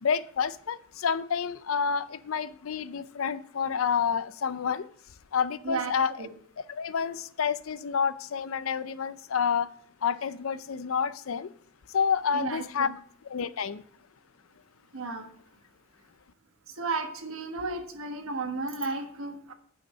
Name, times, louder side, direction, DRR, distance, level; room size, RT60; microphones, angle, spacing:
voice 1, 0.0-4.9 5.3-6.1 6.7-9.7 10.0-11.5 11.9-12.9 13.2-13.8, left 6 dB, 85° left, 0.5 m, -29 dB
voice 2, 12.3-12.9 14.9-15.3 16.8-19.5, right 3 dB, 80° right, 1.3 m, -33 dB
9.0 x 5.8 x 5.3 m
head